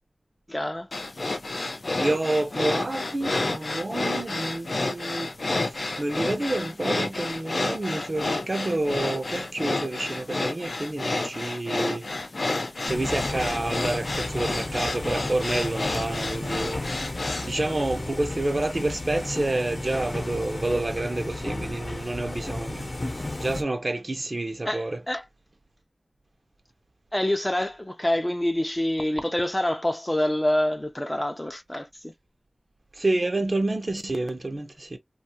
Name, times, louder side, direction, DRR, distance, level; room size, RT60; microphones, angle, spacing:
voice 1, 0.5-0.9 24.7-25.2 27.1-32.1, left 1 dB, 20° left, 0.5 m, -26 dB
sound 1, 0.9-17.5, left 2 dB, 75° left, 0.5 m, -30 dB
voice 2, 2.0-5.3 6.0-12.1 12.9-16.8 17.4-22.9 23.4-25.0 33.0-35.0, right 2 dB, 55° right, 0.6 m, -28 dB
sound 2, 12.9-23.6, left 2 dB, 50° left, 0.8 m, -33 dB
2.5 x 2.3 x 2.7 m
wide cardioid pair, 40°, 0 cm